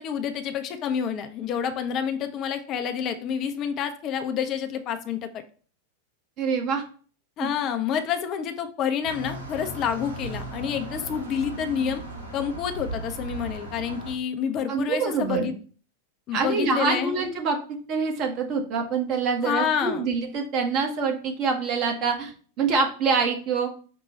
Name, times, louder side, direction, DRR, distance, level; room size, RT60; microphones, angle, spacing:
voice 1, 0.0-5.4 7.4-12.0 12.3-15.5 16.3-17.1 19.4-20.0, left 8 dB, 35° left, 7 dB, 0.5 m, -28 dB
voice 2, 6.4-6.8 7.4-7.5 14.7-15.5 16.3-17.6 17.9-22.3 22.6-23.7, right 5 dB, 40° right, 2 dB, 1.0 m, -25 dB
sound 1, 9.0-14.1, right 1 dB, 75° right, 1.3 m, -36 dB
5.2 x 2.2 x 4.1 m, 0.40 s
figure-of-eight pair, 90°, 0 cm